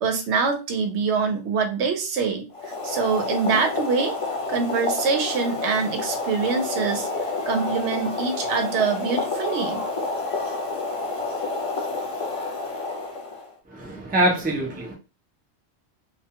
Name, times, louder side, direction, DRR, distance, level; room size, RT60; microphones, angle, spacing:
voice 1, 0.0-4.2 4.5-7.1 7.5-9.8, right 5 dB, 80° right, 0.9 m, -24 dB
Boiling, 2.5-13.5, left 3 dB, 40° left, 0.6 m, -29 dB
voice 2, 13.7-14.9, right 1 dB, 15° right, 0.3 m, -24 dB
2.3 x 2.2 x 2.8 m
omnidirectional pair, 1.2 m